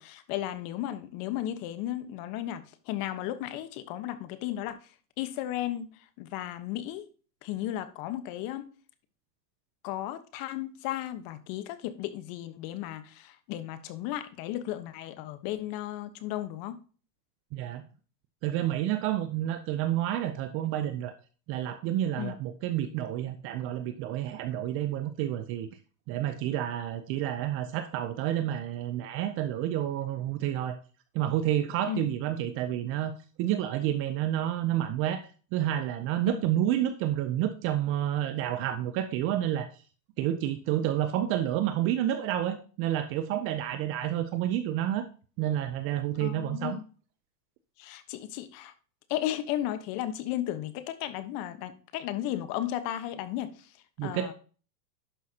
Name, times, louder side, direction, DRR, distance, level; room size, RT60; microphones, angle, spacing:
voice 1, 0.0-4.8 5.2-5.9 6.2-7.0 7.4-8.7 9.8-16.8 22.2-22.3 31.9-32.1 36.3-36.4 46.2-46.8 47.8-48.7 49.1-53.5 54.0-54.3, left 13 dB, 45° left, 1.2 m, -34 dB
voice 2, 17.5-17.9 18.4-21.1 21.5-25.7 26.1-30.8 31.1-39.7 40.2-45.1 45.4-46.8 54.0-54.3, right 12 dB, 30° right, 0.5 m, -29 dB
11.0 x 5.7 x 2.8 m
hypercardioid pair, 125°, 50 cm